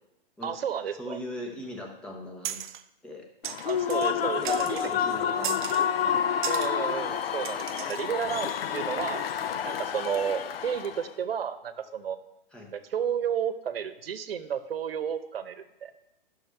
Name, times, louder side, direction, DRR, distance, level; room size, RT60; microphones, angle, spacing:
voice 1, 0.4-1.2 1.5-1.6 3.6-4.9 6.5-9.2 9.6-12.2 12.7-15.9, right 8 dB, 85° right, 11 dB, 0.9 m, -32 dB
voice 2, 1.0-2.6 3.0-3.3 4.0-6.1 12.5-12.7, left 1 dB, 5° left, 1 dB, 0.6 m, -40 dB
sound 1, 2.4-2.8 3.4-4.1 4.4-4.9 5.4-5.9 6.4-6.7 7.4-8.0, right 10 dB, 55° right, 0.5 m, -36 dB
Human voice / Cheering / Applause, 3.4-11.1, left 8 dB, 85° left, 0.6 m, -29 dB
10.5 x 6.3 x 3.4 m, 0.94 s
hypercardioid pair, 160°, 29 cm